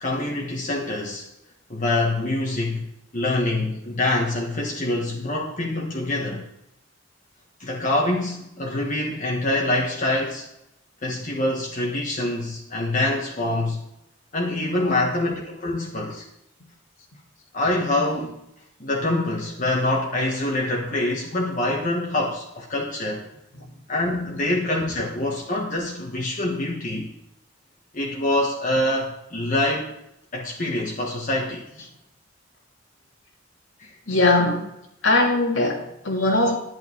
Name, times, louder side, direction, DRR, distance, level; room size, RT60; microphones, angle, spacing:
voice 1, 0.0-1.3 1.7-2.9 3.1-6.4 7.6-10.5 11.0-13.8 14.3-16.2 17.5-18.4 18.8-23.2 23.9-27.1 27.9-30.0 30.3-31.6 33.8-33.9, left 1 dB, 40° left, -1 dB, 1.5 m, -25 dB
voice 2, 34.1-34.6 35.0-36.6, left 2 dB, 70° left, -1 dB, 2.2 m, -20 dB
11.0 x 9.3 x 4.6 m, 0.83 s
head